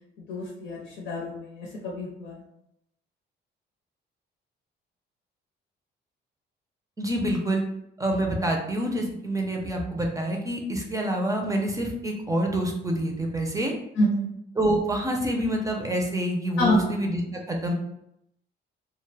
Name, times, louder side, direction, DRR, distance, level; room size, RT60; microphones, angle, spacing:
voice 1, 0.3-2.4 14.0-14.3 16.6-16.8, equal, 75° left, -3 dB, 0.7 m, -27 dB
voice 2, 7.0-7.6 8.0-13.7 14.6-17.7, right 1 dB, 15° right, 1 dB, 0.5 m, -27 dB
2.2 x 2.0 x 3.1 m, 0.78 s
cardioid pair, 90°, 20 cm